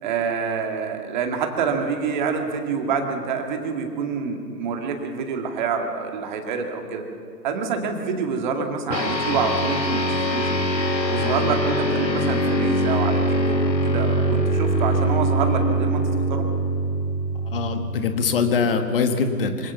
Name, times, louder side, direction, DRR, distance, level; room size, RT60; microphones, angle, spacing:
voice 1, 0.0-7.0 7.4-10.0 10.3-10.5 11.1-16.5, right 5 dB, 30° right, 4 dB, 2.1 m, -27 dB
sound 1, 8.9-18.6, right 1 dB, 85° left, 1.9 m, -23 dB
voice 2, 17.4-19.7, left 5 dB, 35° left, 7 dB, 1.8 m, -23 dB
25.5 x 17.0 x 7.0 m, 2.4 s
figure-of-eight pair, 140°, 50 cm